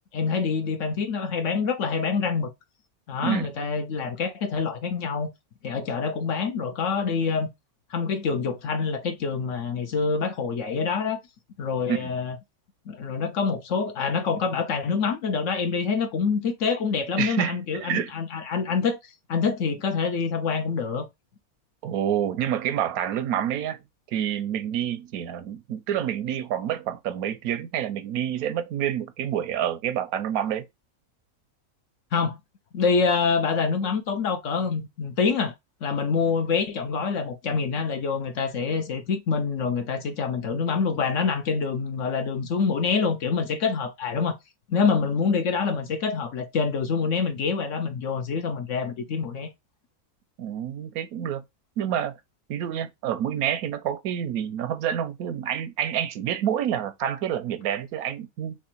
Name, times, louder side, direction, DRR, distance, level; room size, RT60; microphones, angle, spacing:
voice 1, 0.1-2.5 3.1-5.3 5.6-7.5 7.9-11.2 11.6-12.4 12.9-19.0 19.3-21.1 32.1-32.4 32.7-35.5 35.8-44.4 44.7-49.5, left 5 dB, 60° left, 1.0 m, -26 dB
voice 2, 17.2-18.1 21.8-23.8 24.1-30.6 50.4-51.4 51.8-52.2 52.5-58.6, right 10 dB, 80° right, 1.1 m, -28 dB
3.5 x 3.0 x 4.3 m
omnidirectional pair, 1.5 m